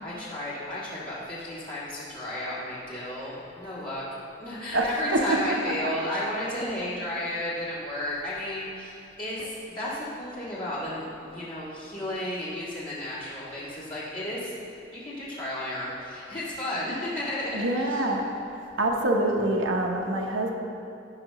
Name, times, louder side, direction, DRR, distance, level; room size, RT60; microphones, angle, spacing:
voice 1, 0.0-4.0 4.4-14.5 14.9-18.0, left 1 dB, 45° left, -10 dB, 2.1 m, -33 dB
voice 2, 4.7-5.2 17.5-18.2 18.8-20.5, right 1 dB, 80° right, 1 dB, 0.9 m, -25 dB
14.5 x 5.8 x 3.0 m, 2.7 s
head